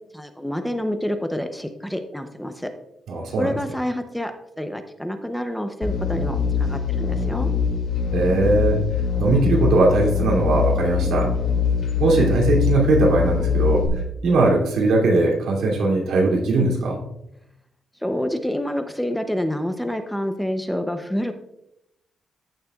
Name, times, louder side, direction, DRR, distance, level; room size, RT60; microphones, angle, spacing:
voice 1, 0.1-2.7 3.4-7.5 18.0-21.3, equal, 5° left, 7 dB, 0.6 m, -28 dB
voice 2, 3.1-3.6 8.1-8.8 9.2-11.3 12.0-13.9 14.2-17.0, right 2 dB, 80° right, -2 dB, 2.6 m, -19 dB
sound 1, 5.8-13.9, left 6 dB, 60° left, 2.2 m, -23 dB
14.5 x 6.6 x 2.3 m, 0.82 s
cardioid pair, 140°, 0 cm